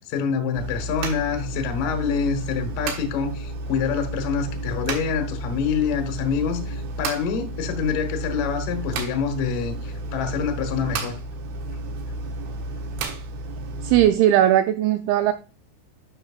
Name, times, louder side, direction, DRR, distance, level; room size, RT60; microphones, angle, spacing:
voice 1, 0.1-11.2, left 6 dB, 75° left, 2.0 m, -26 dB
sound 1, 0.5-14.1, right 2 dB, 70° right, 3.3 m, -32 dB
voice 2, 13.8-15.3, right 12 dB, 90° right, 2.6 m, -18 dB
12.0 x 5.8 x 2.4 m
omnidirectional pair, 5.8 m